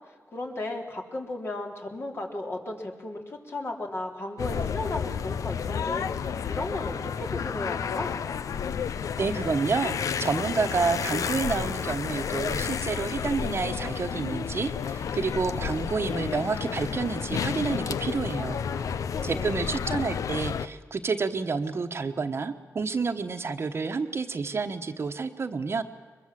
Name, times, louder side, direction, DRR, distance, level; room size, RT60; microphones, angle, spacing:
voice 1, 0.1-8.2 18.7-19.7, left 2 dB, 45° left, 2 dB, 3.5 m, -35 dB
sound 1, 4.4-20.7, left 7 dB, 80° left, 0.7 m, -31 dB
voice 2, 9.2-18.6 19.2-25.8, right 4 dB, 45° right, 8 dB, 1.2 m, -29 dB
22.5 x 22.0 x 7.6 m, 1.4 s
cardioid pair, 90°, 6 cm